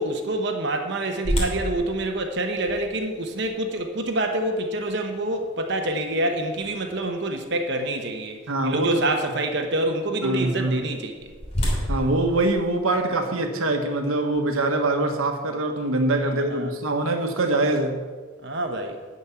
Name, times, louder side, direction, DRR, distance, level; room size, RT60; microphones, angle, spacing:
voice 1, 0.0-11.3 16.1-16.7 18.4-19.0, right 1 dB, 55° right, 4 dB, 1.0 m, -27 dB
sound 1, 1.2-7.2 7.7-7.8 8.4-8.7 10.7-13.4, equal, 30° left, 3.0 m, -32 dB
voice 2, 8.5-9.0 10.2-10.9 11.9-18.0, right 2 dB, 90° right, 4 dB, 1.2 m, -24 dB
12.5 x 5.3 x 8.5 m, 1.4 s
head